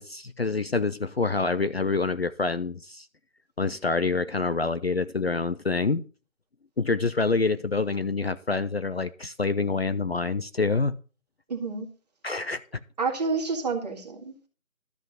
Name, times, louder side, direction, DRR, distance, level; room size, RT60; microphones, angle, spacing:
voice 1, 0.0-3.1 3.6-6.0 6.8-10.9 12.2-12.6, left 3 dB, 50° left, 0.6 m, -26 dB
voice 2, 11.5-11.9 13.0-14.5, right 4 dB, 30° right, 1.9 m, -29 dB
13.0 x 5.6 x 6.3 m
figure-of-eight pair, 160°, 41 cm